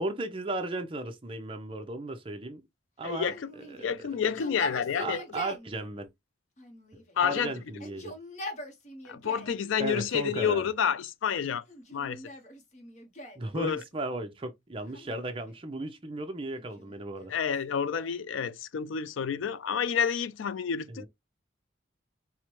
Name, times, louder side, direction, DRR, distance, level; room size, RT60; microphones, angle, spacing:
voice 1, 0.0-2.6 3.0-4.1 5.0-6.1 7.2-8.1 9.8-10.7 13.4-17.3 20.9-21.1, right 2 dB, 25° right, 0.6 m, -35 dB
voice 2, 3.0-3.5 3.8-5.2 7.2-7.5 9.0-11.6 11.9-12.2 13.5-13.8 17.3-21.1, left 7 dB, 70° left, 0.4 m, -29 dB
Yell, 3.3-5.7 6.6-7.3 7.7-9.6 10.3-11.0 11.7-13.5 14.9-15.7 16.5-18.3, left 1 dB, 35° left, 0.8 m, -43 dB
4.4 x 2.1 x 3.0 m
head